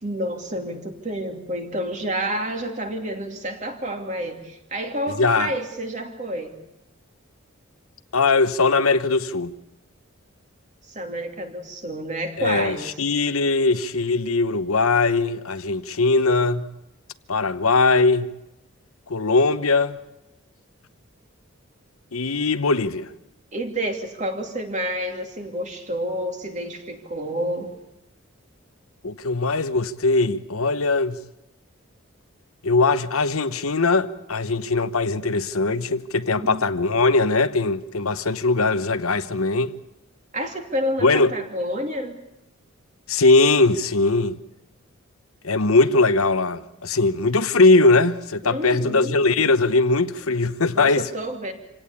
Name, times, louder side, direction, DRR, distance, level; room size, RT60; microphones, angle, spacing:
voice 1, 0.0-6.6 10.9-12.9 23.5-27.7 36.3-36.6 40.3-42.2 48.4-49.2 50.7-51.5, right 1 dB, 35° right, 2.7 m, -29 dB
voice 2, 5.1-5.5 8.1-9.5 12.4-16.7 17.3-18.3 19.1-20.0 22.1-23.1 29.0-31.2 32.6-39.7 41.0-41.3 43.1-44.4 45.4-51.1, left 3 dB, 90° left, 1.0 m, -20 dB
26.5 x 17.5 x 8.5 m
head